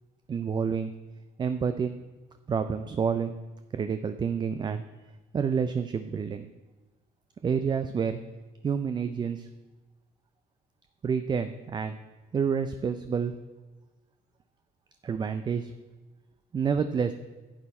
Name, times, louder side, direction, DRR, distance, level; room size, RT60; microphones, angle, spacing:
voice 1, 0.3-0.9 1.4-2.0 2.5-3.4 3.7-4.8 5.3-6.5 7.4-8.2 8.6-9.5 11.0-12.0 12.3-13.3 15.0-15.7 16.5-17.1, right 6 dB, 25° right, 9 dB, 0.4 m, -28 dB
11.5 x 8.5 x 4.3 m, 1.2 s
cardioid pair, 110°, 17 cm